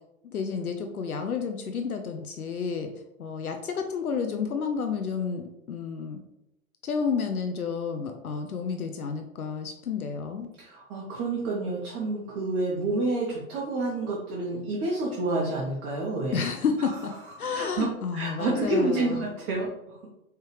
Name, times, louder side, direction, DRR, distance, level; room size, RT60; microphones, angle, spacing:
voice 1, 0.2-2.9 3.2-6.2 6.8-10.5 16.3-16.9 17.4-19.2, left 6 dB, 80° left, 5 dB, 0.6 m, -30 dB
voice 2, 10.6-16.4 16.8-17.0 17.2-17.9 18.1-20.0, right 2 dB, 25° right, -4 dB, 0.9 m, -29 dB
4.4 x 3.3 x 3.2 m, 0.90 s
figure-of-eight pair, 105°, 43 cm